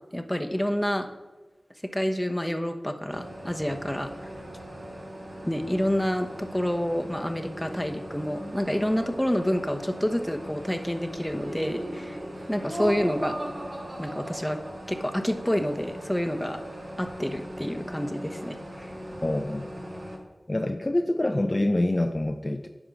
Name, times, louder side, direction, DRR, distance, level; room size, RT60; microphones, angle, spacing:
voice 1, 0.1-1.1 1.9-4.3 5.4-12.2 12.5-13.4 14.0-14.6 14.9-16.6 17.0-18.9, equal, 10° left, 5 dB, 1.0 m, -28 dB
sound 1, 3.1-20.2, equal, 70° right, 2.0 m, -41 dB
Laughter, 11.2-15.0, right 1 dB, 40° right, 3.4 m, -36 dB
voice 2, 19.2-19.6 20.5-22.7, left 1 dB, 35° left, 5 dB, 0.5 m, -26 dB
10.0 x 4.9 x 6.3 m, 1.2 s
cardioid pair, 40°, 0 cm